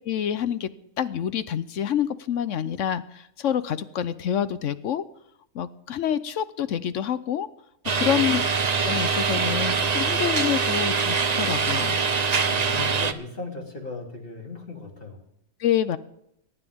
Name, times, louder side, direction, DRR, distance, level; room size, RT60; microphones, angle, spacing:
voice 1, 0.0-0.7 1.0-5.0 5.5-7.5 8.0-8.4 8.8-12.0 15.6-16.0, left 9 dB, 60° left, 14 dB, 0.9 m, -27 dB
sound 1, 7.9-13.1, right 5 dB, 40° right, 0.6 m, -24 dB
voice 2, 12.5-15.3, left 3 dB, 35° left, 0 dB, 3.1 m, -37 dB
22.5 x 11.5 x 3.6 m, 0.75 s
omnidirectional pair, 1.6 m